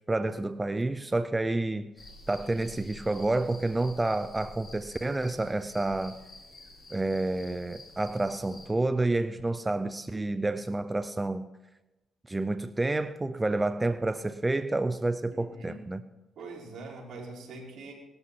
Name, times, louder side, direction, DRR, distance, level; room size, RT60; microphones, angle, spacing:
voice 1, 0.0-1.9 2.3-6.2 6.9-11.5 12.3-16.0, right 2 dB, 15° right, 12 dB, 0.5 m, -29 dB
sound 1, 2.0-8.7, left 2 dB, 25° left, 4.7 m, -49 dB
voice 2, 15.3-15.8 16.3-17.9, right 3 dB, 70° right, -2 dB, 4.7 m, -43 dB
19.0 x 13.5 x 4.2 m, 1.0 s
cardioid pair, 90°, 0 cm